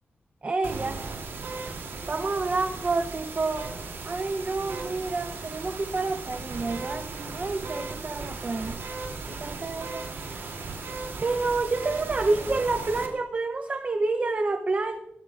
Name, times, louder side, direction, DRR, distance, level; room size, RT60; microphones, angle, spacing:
voice 1, 0.4-1.0 2.0-3.7 4.1-8.8 9.3-10.5 11.2-15.0, right 3 dB, 35° right, 7 dB, 0.7 m, -29 dB
sound 1, 0.6-13.1, right 3 dB, 85° right, 2.8 m, -37 dB
24.5 x 12.5 x 2.5 m, 0.96 s
wide cardioid pair, 115°, 4 cm